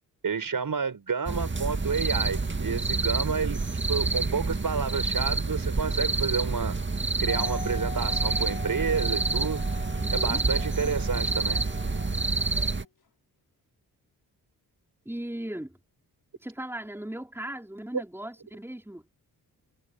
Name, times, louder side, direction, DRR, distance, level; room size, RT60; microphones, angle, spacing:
voice 1, 0.2-3.6 3.9-6.8 7.2-9.7 10.1-11.6, right 5 dB, 55° right, 6.7 m, -30 dB
sound 1, 1.3-12.8, right 3 dB, 30° right, 2.1 m, -28 dB
Wind instrument woodwind instrument, 7.3-12.9, left 5 dB, 65° left, 5.3 m, -42 dB
voice 2, 10.0-10.4 15.0-15.8 16.4-19.1, right 1 dB, 5° right, 5.0 m, -37 dB
cardioid pair, 55°, 39 cm